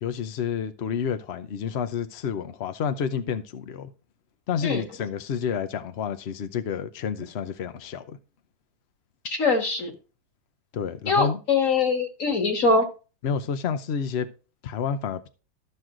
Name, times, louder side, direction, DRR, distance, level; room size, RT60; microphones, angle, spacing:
voice 1, 0.0-3.9 4.5-8.2 10.7-11.4 13.2-14.3 14.6-15.3, left 7 dB, 75° left, 0.6 m, -29 dB
voice 2, 9.2-9.9 11.1-12.9, left 3 dB, 40° left, 2.1 m, -22 dB
13.5 x 6.2 x 3.8 m
omnidirectional pair, 2.1 m